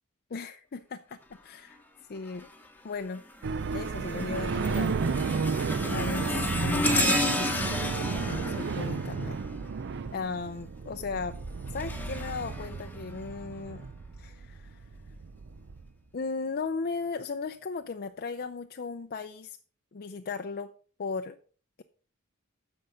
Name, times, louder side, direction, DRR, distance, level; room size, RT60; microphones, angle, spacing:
voice 1, 0.3-1.8 2.1-2.5 2.8-3.2 3.7-5.0 5.9-9.4 10.1-11.4 11.7-13.9 14.2-14.9 16.1-19.6 19.9-20.7 21.0-21.4, left 4 dB, 45° left, 0.5 m, -36 dB
sound 1, 2.3-2.7 3.1-10.0 11.2-13.4 14.0-14.2 15.1-15.2, left 1 dB, 10° left, 1.1 m, -32 dB
sound 2, 3.4-15.9, right 4 dB, 55° right, 0.5 m, -33 dB
9.7 x 6.8 x 5.1 m
head